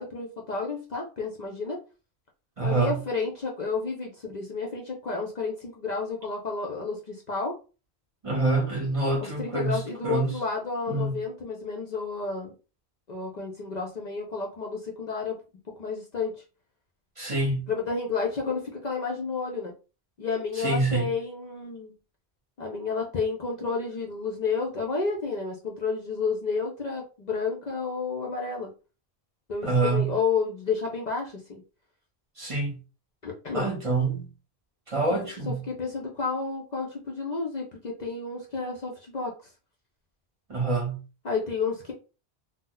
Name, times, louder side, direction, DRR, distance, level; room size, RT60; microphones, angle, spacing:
voice 1, 0.0-1.8 2.6-7.5 9.2-12.5 13.1-15.4 15.8-16.4 17.7-19.7 20.2-21.9 22.6-28.7 29.5-31.6 33.2-33.7 35.5-39.3 41.2-41.9, left 4 dB, 50° left, 0.6 m, -31 dB
voice 2, 2.6-3.0 8.2-10.3 10.9-11.2 17.2-17.7 20.5-21.1 29.6-30.1 32.4-32.8 33.5-34.3 34.9-35.6 40.5-41.0, right 3 dB, 35° right, 0.8 m, -26 dB
2.6 x 2.0 x 3.8 m
omnidirectional pair, 1.1 m